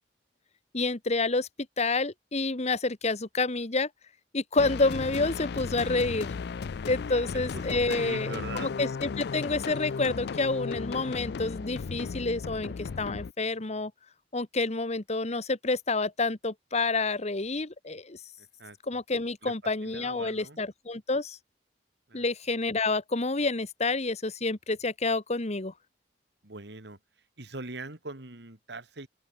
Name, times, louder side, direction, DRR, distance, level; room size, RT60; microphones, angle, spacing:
voice 1, 0.7-1.5 1.8-3.9 4.3-6.3 6.9-13.9 14.3-18.2 18.9-21.4 22.1-25.7, left 3 dB, 40° left, 1.5 m, -29 dB
sound 1, 4.6-13.3, left 5 dB, 65° left, 0.4 m, -35 dB
voice 2, 7.5-8.7 18.4-18.8 19.4-19.5 19.8-20.6 22.1-22.2 26.4-27.0 27.4-29.1, right 3 dB, 65° right, 2.3 m, -41 dB
open air
head